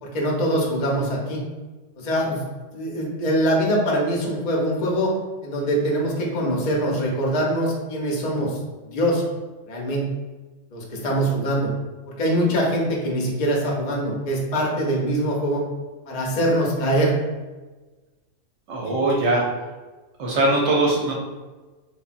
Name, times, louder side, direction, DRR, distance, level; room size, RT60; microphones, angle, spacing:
voice 1, 0.0-1.4 2.0-2.4 2.7-5.1 5.4-8.6 8.9-9.2 9.7-10.1 10.7-11.7 12.1-15.6 16.1-17.1 18.8-19.0, right 1 dB, 55° left, -2 dB, 0.4 m, -23 dB
voice 2, 18.7-19.4 20.2-21.1, right 2 dB, 65° right, -2 dB, 0.9 m, -21 dB
3.4 x 2.1 x 2.4 m, 1.2 s
omnidirectional pair, 1.4 m